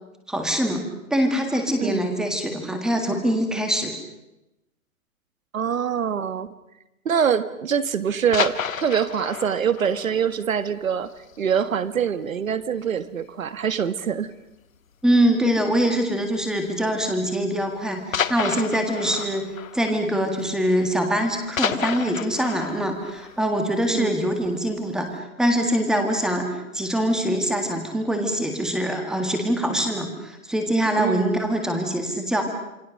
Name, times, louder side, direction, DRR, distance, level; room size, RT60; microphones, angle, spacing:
voice 1, 0.3-0.8 1.1-4.0 15.0-19.5 19.7-26.5 26.7-32.4, equal, ahead, 4 dB, 1.8 m, -23 dB
voice 2, 5.5-6.5 7.1-11.1 11.4-14.3 23.9-24.2 31.0-31.4, right 7 dB, 65° right, 13 dB, 1.8 m, -24 dB
sound 1, 8.1-11.6 11.9-12.0 12.5-12.7 13.0-13.1 13.9-14.3 15.5-15.8 16.7-16.8 18.1-20.9 21.2-24.3 24.8-24.9, left 7 dB, 65° left, 1.7 m, -31 dB
28.0 x 23.5 x 6.5 m, 0.92 s
hypercardioid pair, 160°, 43 cm